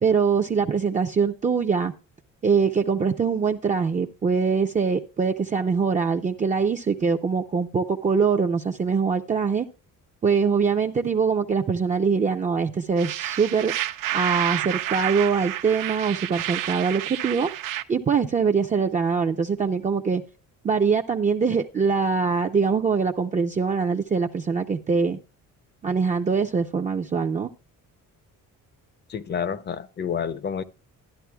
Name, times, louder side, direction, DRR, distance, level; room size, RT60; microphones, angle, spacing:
voice 1, 0.0-1.9 2.4-9.7 10.2-13.7 14.1-17.5 17.9-20.2 20.6-25.2 25.8-27.5, right 5 dB, 25° right, 0.5 m, -23 dB
sound 1, 13.0-17.8, right 13 dB, 75° right, 0.8 m, -30 dB
voice 2, 29.1-30.6, left 7 dB, 35° left, 0.6 m, -29 dB
12.5 x 11.0 x 2.2 m
cardioid pair, 155°, 32 cm